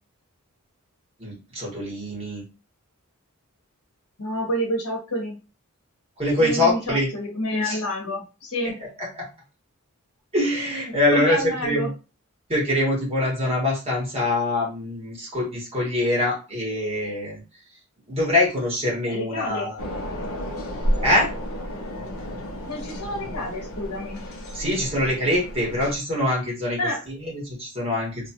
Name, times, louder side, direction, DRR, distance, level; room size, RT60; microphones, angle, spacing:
voice 1, 1.2-2.5 6.2-7.1 7.6-7.8 8.6-8.7 9.0-9.3 10.3-11.9 12.5-17.4 18.1-19.8 21.0-21.3 24.5-26.8 27.1-28.3, left 1 dB, 25° right, -4 dB, 1.5 m, -24 dB
voice 2, 4.2-5.3 6.4-8.8 11.1-11.9 19.1-19.7 22.7-24.2 26.8-27.0, equal, 90° left, 0 dB, 1.0 m, -28 dB
sound 1, 19.8-26.0, equal, 70° left, 0.8 m, -31 dB
2.9 x 2.4 x 2.8 m, 0.31 s
head